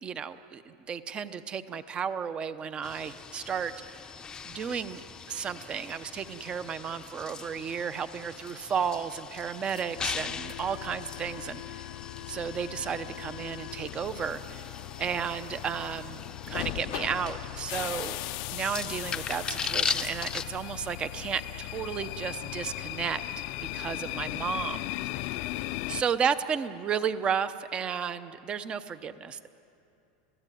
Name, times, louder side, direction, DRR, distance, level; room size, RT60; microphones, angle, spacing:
voice 1, 0.0-3.7 4.4-5.0 5.3-11.6 12.3-14.7 15.0-16.2 16.5-18.2 18.5-23.2 23.7-24.8 25.1-25.2 25.9-29.5, right 7 dB, 20° right, 13 dB, 0.8 m, -33 dB
sound 1, 2.8-20.4, left 6 dB, 15° left, 0.7 m, -39 dB
sound 2, 10.0-26.0, left 17 dB, 50° left, 0.6 m, -38 dB
30.0 x 16.5 x 9.2 m, 2.7 s
supercardioid pair, 160°, 5 cm